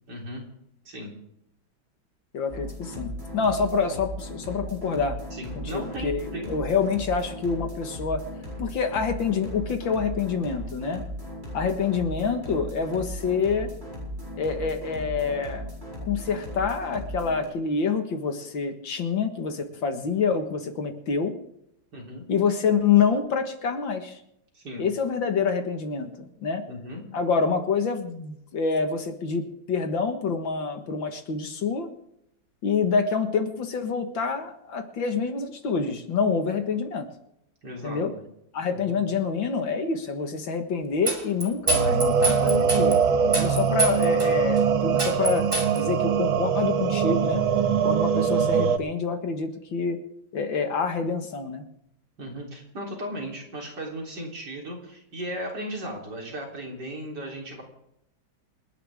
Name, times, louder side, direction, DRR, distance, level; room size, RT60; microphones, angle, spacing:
voice 1, 0.1-0.4 0.8-1.1 5.3-6.5 21.9-22.3 24.5-24.9 26.7-27.0 37.6-38.0 38.9-39.0 43.2-43.5 52.2-57.6, equal, 55° right, -1 dB, 4.4 m, -36 dB
voice 2, 2.3-5.2 5.6-8.2 8.6-11.0 11.5-13.7 14.4-15.7 16.0-21.3 22.3-24.2 24.8-26.6 27.1-31.9 32.6-37.1 37.8-38.1 38.5-43.0 43.4-45.5 45.7-47.4 47.8-50.0 50.3-51.6, left 5 dB, 70° left, 6 dB, 2.3 m, -27 dB
sound 1, 2.5-17.5, equal, 35° right, 7.6 m, -37 dB
sound 2, 41.1-42.9 43.3-44.3 44.6-44.7 45.0-45.8, right 2 dB, 15° right, 2.3 m, -26 dB
sound 3, 41.7-48.8, right 6 dB, 80° right, 1.8 m, -22 dB
28.0 x 10.5 x 3.6 m, 0.79 s
omnidirectional pair, 2.2 m